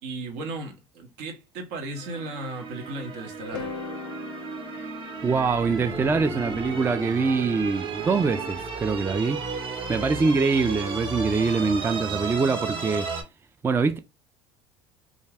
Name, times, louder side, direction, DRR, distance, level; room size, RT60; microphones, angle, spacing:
voice 1, 0.0-3.8, right 2 dB, 70° right, 0.8 m, -36 dB
sound 1, 2.0-13.2, right 4 dB, 45° right, 0.9 m, -34 dB
sound 2, 3.4-7.6, left 4 dB, 85° left, 0.5 m, -40 dB
voice 2, 5.2-9.4 9.9-13.1 13.6-14.0, right 4 dB, 20° right, 0.3 m, -24 dB
2.4 x 2.1 x 3.3 m
hypercardioid pair, 75°, 12 cm